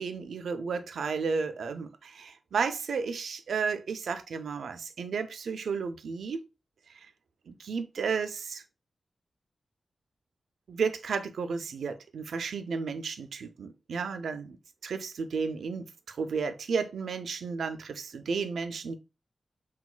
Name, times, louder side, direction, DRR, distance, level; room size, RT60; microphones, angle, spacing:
voice 1, 0.0-6.5 6.9-7.1 7.5-8.6 10.7-14.6 14.8-19.0, right 5 dB, 85° right, 0.3 m, -33 dB
3.9 x 2.2 x 2.4 m
cardioid pair, 40°, 0 cm